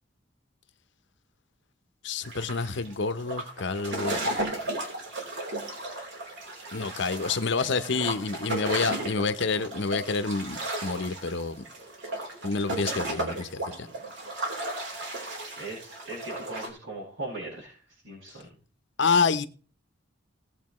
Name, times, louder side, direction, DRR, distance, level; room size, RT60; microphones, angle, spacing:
voice 1, 2.0-4.2 6.7-11.6 12.4-13.9 19.0-19.5, left 4 dB, 65° left, 0.9 m, -28 dB
sound 1, 2.2-16.7, right 1 dB, 65° right, 3.7 m, -35 dB
voice 2, 15.6-17.8 18.0-18.5, right 2 dB, 90° right, 6.5 m, -39 dB
19.0 x 7.8 x 3.1 m
head